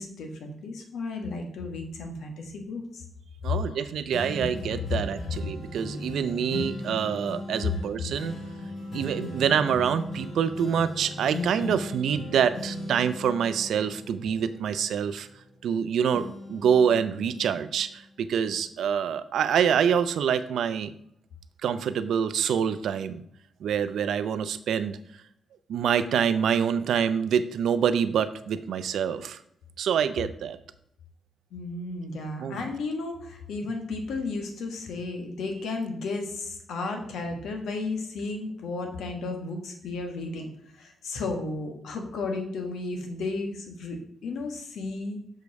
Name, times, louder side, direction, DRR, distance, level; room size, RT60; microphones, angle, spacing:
voice 1, 0.0-3.0 3.7-3.8 31.5-45.2, left 3 dB, 85° left, 4 dB, 1.4 m, -34 dB
voice 2, 3.4-8.3 8.9-15.3 15.6-20.9 21.6-23.2 23.6-25.0 25.7-29.4 29.8-30.6 32.4-32.7, right 8 dB, 80° right, 12 dB, 0.5 m, -26 dB
sound 1, 4.1-15.7 16.1-18.0 18.5-18.6, left 1 dB, 70° left, 2.9 m, -38 dB
6.5 x 5.2 x 4.7 m, 0.72 s
cardioid pair, 120°, 0 cm